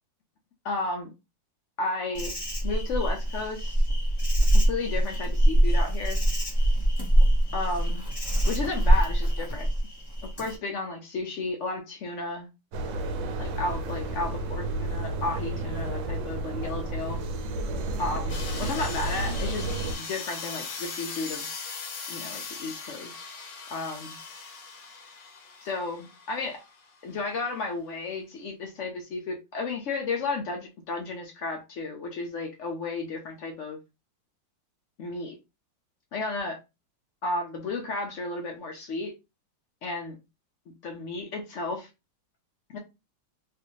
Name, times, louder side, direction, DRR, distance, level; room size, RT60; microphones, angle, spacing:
voice 1, 0.6-1.1 1.8-2.3 2.6-3.8 4.5-6.2 7.5-8.1 8.4-9.7 10.2-12.5 13.4-17.2 18.0-19.7 20.0-21.5 22.1-23.2 23.7-24.2 25.6-26.6 27.0-33.8 35.0-35.4 36.1-36.6 37.2-39.1 39.8-40.2 40.8-41.9 42.7-42.8, left 3 dB, 85° left, 2 dB, 0.6 m, -33 dB
Insect, 2.1-10.6, right 1 dB, 20° left, 0.8 m, -23 dB
sound 1, 12.7-19.9, right 2 dB, 80° right, 1.4 m, -31 dB
sound 2, 18.3-26.9, left 5 dB, 65° left, 1.4 m, -39 dB
3.3 x 2.5 x 3.0 m, 0.26 s
omnidirectional pair, 2.0 m